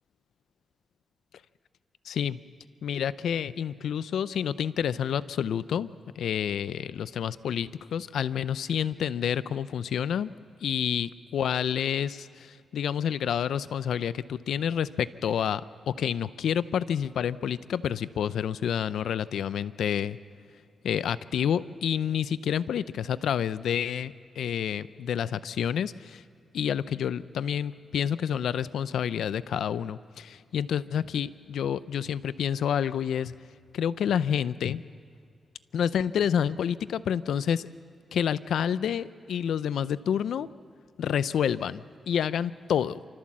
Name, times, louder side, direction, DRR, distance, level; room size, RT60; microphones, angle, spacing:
voice 1, 2.1-2.4 2.8-5.9 6.2-10.3 10.6-20.2 20.8-26.2 26.5-33.3 33.7-34.8 35.7-37.7 38.1-40.5 41.0-43.0, left 8 dB, 85° left, 16 dB, 0.5 m, -29 dB
28.5 x 13.5 x 7.3 m, 2.1 s
cardioid pair, 90°, 0 cm